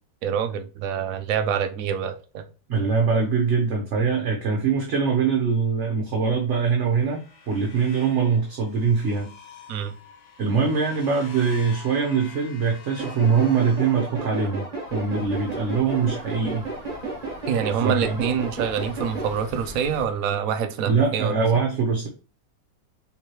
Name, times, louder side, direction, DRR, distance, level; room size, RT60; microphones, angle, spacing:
voice 1, 0.2-2.4 9.7-9.9 17.5-21.3, right 7 dB, 75° right, 0.8 m, -26 dB
voice 2, 2.7-9.3 10.4-14.6 14.9-16.6 17.7-18.2 20.8-22.1, right 5 dB, 50° right, 1.0 m, -23 dB
sound 1, 6.4-14.7, left 4 dB, 70° left, 1.7 m, -47 dB
sound 2, 13.0-19.3, right 3 dB, 25° right, 1.0 m, -33 dB
sound 3, 14.9-20.1, left 2 dB, 40° left, 0.8 m, -44 dB
4.4 x 3.6 x 3.0 m
omnidirectional pair, 2.0 m